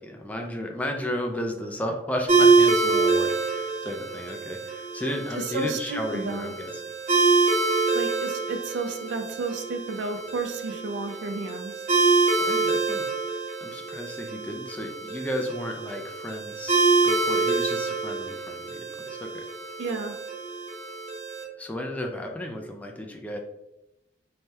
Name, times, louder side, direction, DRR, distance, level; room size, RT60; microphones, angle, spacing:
voice 1, 0.0-6.9 12.4-13.1 13.6-19.5 21.6-23.4, equal, 10° left, 2 dB, 0.3 m, -33 dB
sound 1, 2.3-21.4, right 3 dB, 45° right, 0.9 m, -25 dB
voice 2, 5.3-6.5 7.9-11.8 19.8-20.2, right 3 dB, 85° right, 7 dB, 0.4 m, -32 dB
3.2 x 2.2 x 2.7 m, 0.91 s
head